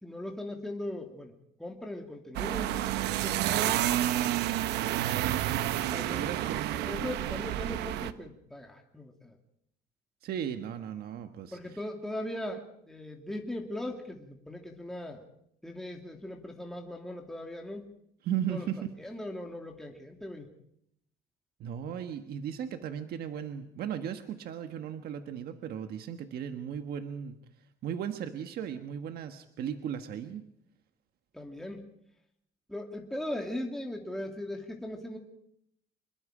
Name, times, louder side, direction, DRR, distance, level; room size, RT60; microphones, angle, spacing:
voice 1, 0.0-1.3 1.6-3.8 5.9-9.3 11.5-15.2 15.6-17.9 18.5-18.7 19.0-20.5 31.3-31.9 32.7-35.2, left 1 dB, ahead, 1 dB, 2.5 m, -39 dB
sound 1, 2.3-8.1, right 13 dB, 85° right, 0.9 m, -29 dB
voice 2, 5.7-6.6 10.2-11.8 18.2-18.9 21.6-27.4 27.8-30.5, right 9 dB, 65° right, 7 dB, 1.4 m, -36 dB
26.0 x 21.0 x 5.0 m, 0.73 s
cardioid pair, 110°, 17 cm